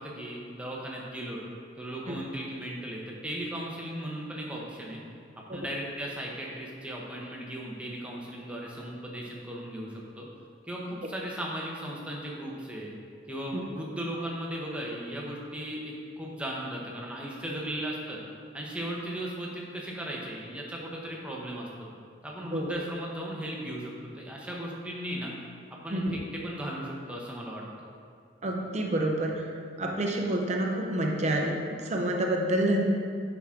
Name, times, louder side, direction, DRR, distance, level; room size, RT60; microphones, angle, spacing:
voice 1, 0.0-1.4 1.8-5.0 5.5-10.3 10.7-12.9 13.3-18.2 18.5-21.9 22.2-25.3 25.8-27.6, right 1 dB, 5° right, -3 dB, 1.0 m, -37 dB
voice 2, 28.4-29.5 29.8-32.9, right 1 dB, 35° right, 1 dB, 0.7 m, -28 dB
7.8 x 6.0 x 3.8 m, 2.3 s
head